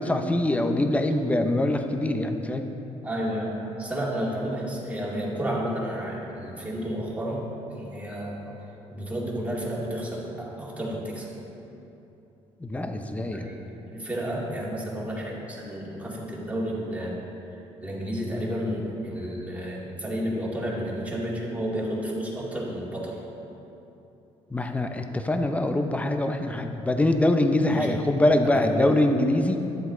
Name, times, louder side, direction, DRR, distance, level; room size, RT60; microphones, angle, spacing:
voice 1, 0.0-2.7 12.6-13.5 24.5-29.6, left 1 dB, 10° left, 6 dB, 0.7 m, -24 dB
voice 2, 3.0-8.6 8.9-11.3 13.2-17.2 17.8-23.2 27.7-27.9 28.5-29.0, equal, 10° right, -5 dB, 2.1 m, -31 dB
12.0 x 7.8 x 3.8 m, 2.9 s
cardioid pair, 105°, 12 cm